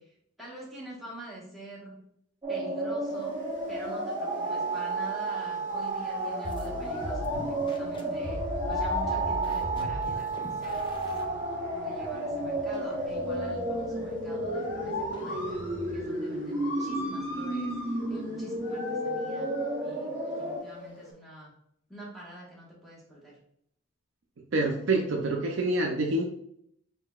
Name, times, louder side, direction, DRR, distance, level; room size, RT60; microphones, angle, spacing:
voice 1, 0.0-2.0 2.5-3.3 3.7-8.4 8.7-11.4 11.7-15.6 15.9-19.5 19.8-21.5 21.9-23.4, right 1 dB, ahead, -6 dB, 1.2 m, -46 dB
sound 1, 2.4-20.6, right 2 dB, 15° right, 0.7 m, -32 dB
sound 2, 3.1-21.1, left 1 dB, 60° left, 1.0 m, -39 dB
sound 3, 6.4-16.1, left 1 dB, 25° left, 0.4 m, -41 dB
voice 2, 24.5-26.3, right 2 dB, 65° right, 1 dB, 0.5 m, -26 dB
4.2 x 3.7 x 2.3 m, 0.70 s
head